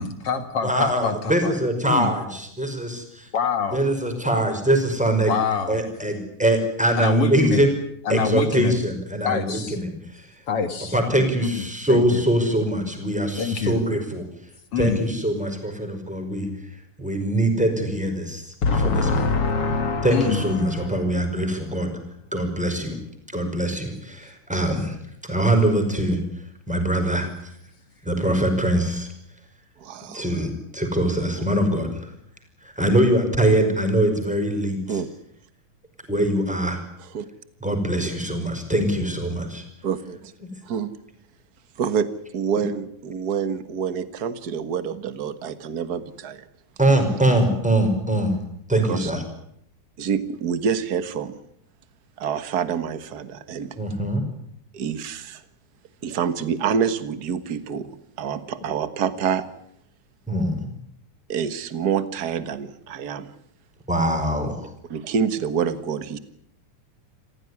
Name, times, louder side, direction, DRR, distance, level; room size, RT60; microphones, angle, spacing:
voice 1, 0.0-1.5 1.8-2.1 3.3-3.8 5.3-5.8 7.0-7.7 8.1-8.8 9.2-9.8 10.5-10.9 11.4-12.2 13.4-13.8 14.7-15.0 18.6-21.3, left 5 dB, 50° left, 9 dB, 2.3 m, -25 dB
voice 2, 0.6-3.3 3.7-5.3 5.7-7.7 8.1-10.4 10.9-14.3 14.7-19.2 20.0-21.9 22.3-23.0 23.3-25.0 25.2-26.2 26.7-27.5 28.0-29.1 30.1-32.1 32.6-35.0 36.1-36.8 37.6-39.6 40.4-40.5 46.8-48.4 48.7-49.2 53.8-54.2 60.3-60.7 63.9-64.7, right 1 dB, ahead, 5 dB, 5.0 m, -23 dB
voice 3, 29.8-30.2 34.9-35.1 37.1-37.2 39.8-40.3 40.6-40.9 41.8-42.1 42.3-46.4 48.8-49.1 50.0-51.4 52.2-53.8 54.7-55.4 56.0-57.9 58.2-59.4 61.3-63.3 64.9-66.2, right 7 dB, 50° right, 12 dB, 1.1 m, -27 dB
27.5 x 15.5 x 9.8 m, 0.72 s
omnidirectional pair, 3.9 m